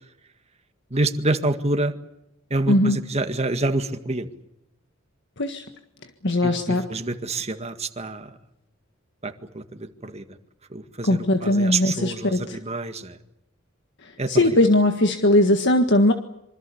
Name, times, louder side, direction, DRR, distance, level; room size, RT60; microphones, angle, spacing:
voice 1, 0.9-1.9 2.5-4.3 6.4-8.4 9.2-10.4 10.7-13.2 14.2-14.6, right 2 dB, 30° right, 7 dB, 1.9 m, -27 dB
voice 2, 2.7-3.0 5.4-5.6 6.2-6.8 11.0-12.6 14.3-16.1, left 1 dB, 60° left, 6 dB, 1.7 m, -19 dB
26.5 x 25.0 x 7.0 m, 0.84 s
head